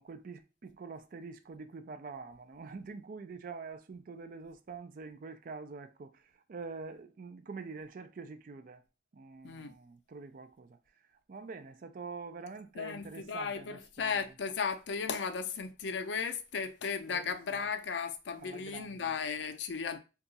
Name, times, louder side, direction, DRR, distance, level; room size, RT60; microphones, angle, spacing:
voice 1, 0.0-8.8 9.1-10.8 11.1-14.3 17.1-17.7 18.4-19.1, right 4 dB, 50° right, 0.4 m, -46 dB
voice 2, 12.8-20.0, left 6 dB, 75° left, 0.5 m, -35 dB
2.7 x 2.3 x 4.0 m
head